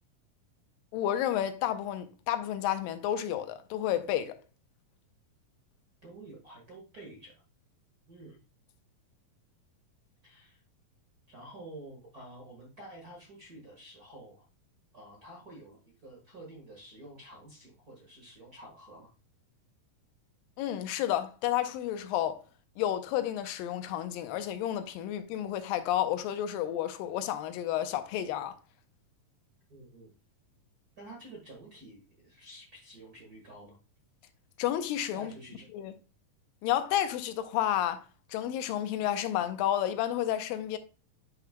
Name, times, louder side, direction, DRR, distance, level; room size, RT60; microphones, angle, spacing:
voice 1, 0.9-4.4 20.6-22.4 22.8-28.5 34.6-35.3 35.7-35.9 36.6-40.8, left 11 dB, 85° left, 2.4 m, -31 dB
voice 2, 6.0-7.3 8.1-8.4 10.2-10.6 11.3-14.5 14.9-19.1 29.7-30.1 31.0-33.8 35.1-35.7, right 1 dB, 45° right, 1.2 m, -49 dB
9.1 x 5.7 x 2.2 m
omnidirectional pair, 4.0 m